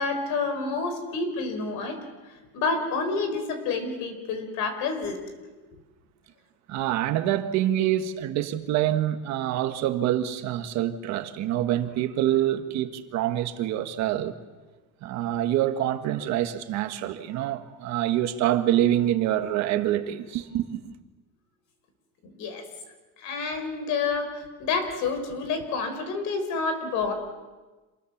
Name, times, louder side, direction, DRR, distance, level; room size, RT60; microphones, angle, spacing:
voice 1, 0.0-2.0 2.5-5.2 22.2-22.6 23.2-27.1, left 4 dB, 55° left, 4.8 m, -29 dB
voice 2, 6.7-14.4 15.0-20.9, right 12 dB, 50° right, 1.5 m, -26 dB
27.0 x 21.5 x 7.3 m
cardioid pair, 165°, 36 cm